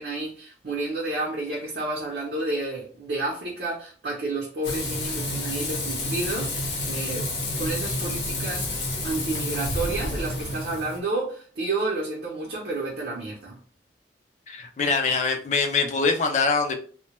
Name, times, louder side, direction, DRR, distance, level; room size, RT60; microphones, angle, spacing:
voice 1, 0.0-7.3 7.6-8.8 9.0-13.6, right 2 dB, 60° right, -3 dB, 0.6 m, -30 dB
Frying (food), 4.6-11.0, left 2 dB, 80° left, 0.7 m, -29 dB
voice 2, 14.5-16.7, left 4 dB, 40° left, 4 dB, 0.4 m, -23 dB
2.1 x 2.1 x 2.9 m, 0.42 s
head